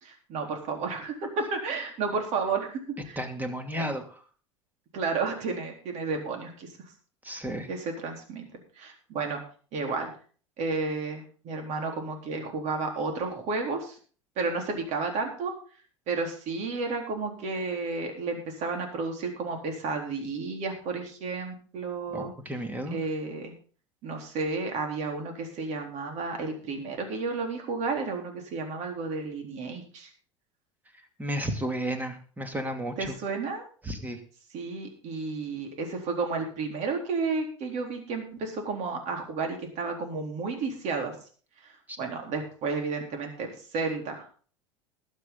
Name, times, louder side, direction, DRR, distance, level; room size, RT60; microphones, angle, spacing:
voice 1, 0.0-3.2 4.9-6.7 7.7-8.4 8.8-9.4 9.7-10.1 10.6-14.0 14.4-15.5 16.1-22.3 22.9-23.5 24.0-30.1 33.0-33.6 34.5-41.2 41.6-41.7 42.0-44.3, right 4 dB, 45° right, 3 dB, 4.0 m, -32 dB
voice 2, 3.2-4.1 7.2-7.7 22.1-23.0 31.2-33.1 33.8-34.2 41.9-42.0, equal, 10° right, 6 dB, 2.6 m, -32 dB
20.5 x 7.7 x 4.0 m, 0.41 s
figure-of-eight pair, 80°, 16 cm